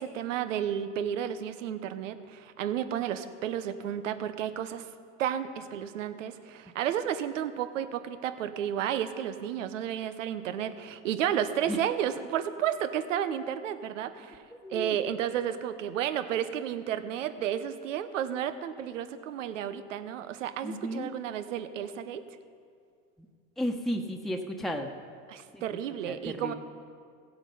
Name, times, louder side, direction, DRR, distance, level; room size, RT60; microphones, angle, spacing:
voice 1, 0.0-4.9 5.2-14.4 14.7-22.2 25.3-26.5, right 10 dB, 90° right, 11 dB, 0.9 m, -32 dB
voice 2, 20.6-21.1 23.6-24.9 25.5-25.6 26.0-26.5, equal, ahead, 3 dB, 1.2 m, -33 dB
16.0 x 8.0 x 5.5 m, 2.2 s
hypercardioid pair, 75°, 37 cm